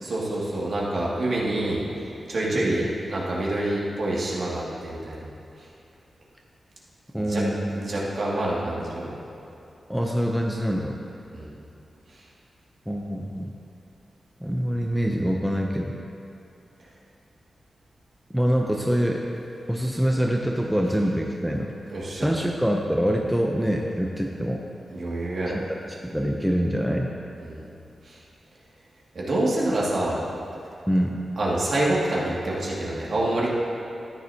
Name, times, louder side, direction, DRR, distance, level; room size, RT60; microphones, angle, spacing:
voice 1, 0.0-1.8 2.3-5.2 7.2-7.4 7.7-9.1 11.3-11.5 21.9-22.3 24.9-25.6 27.4-27.7 28.1-28.2 29.1-30.2 31.4-33.5, right 1 dB, 50° right, -6 dB, 2.1 m, -26 dB
voice 2, 2.4-2.9 7.1-7.8 9.9-11.0 12.9-13.5 14.4-16.0 18.3-19.2 19.7-21.7 22.1-24.6 25.5-27.1 30.9-31.2, equal, ahead, 0 dB, 0.6 m, -25 dB
14.0 x 10.5 x 2.8 m, 2.8 s
wide cardioid pair, 165°, 0 cm